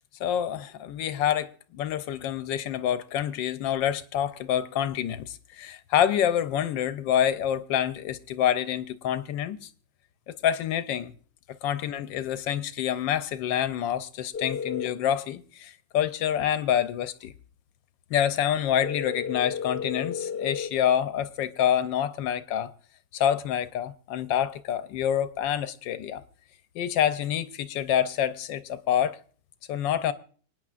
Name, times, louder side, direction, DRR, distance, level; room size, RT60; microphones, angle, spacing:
voice 1, 0.2-9.7 10.3-11.1 11.6-17.3 18.1-22.7 23.1-26.2 26.7-29.2 29.7-30.1, left 10 dB, 90° left, 1.4 m, -27 dB
sound 1, 14.3-14.9 18.8-20.7, left 6 dB, 55° left, 0.6 m, -32 dB
26.0 x 9.4 x 2.5 m
omnidirectional pair, 1.9 m